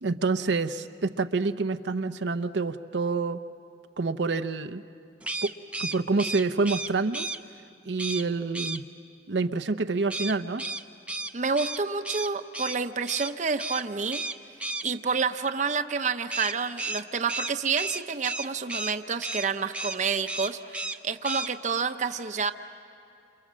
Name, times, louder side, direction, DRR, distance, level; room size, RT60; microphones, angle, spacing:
voice 1, 0.0-3.4 4.0-4.8 5.4-5.5 5.8-7.3 7.8-8.8 9.3-10.6, right 3 dB, 85° right, 8 dB, 0.7 m, -27 dB
sound 1, 5.2-7.4 8.0-8.3 8.5-8.8 10.1-12.8 13.1-13.3 13.6-13.8 14.1-14.9 16.3-19.0 19.2-19.5 19.7-20.0 20.3-21.0 21.2-21.5, right 3 dB, 5° right, 0.6 m, -33 dB
voice 2, 11.3-14.2 14.8-22.5, right 5 dB, 45° right, 8 dB, 0.8 m, -29 dB
29.0 x 27.5 x 7.5 m, 2.6 s
head